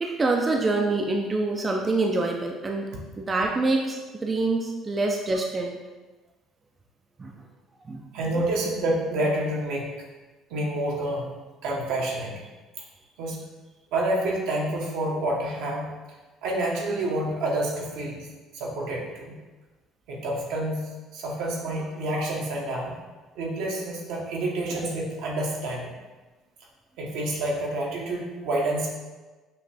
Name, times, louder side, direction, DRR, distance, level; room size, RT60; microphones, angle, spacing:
voice 1, 0.0-2.9 3.2-5.8 7.2-7.3 7.8-8.1, right 3 dB, 25° right, 1 dB, 0.5 m, -26 dB
voice 2, 8.1-10.0 10.5-11.3 11.6-12.4 13.2-13.4 13.9-15.9 16.4-18.3 18.5-19.4 20.1-23.0 23.3-25.9 27.0-28.9, right 1 dB, 80° right, -2 dB, 1.1 m, -28 dB
5.9 x 2.5 x 3.3 m, 1.2 s
supercardioid pair, 90°, 0 cm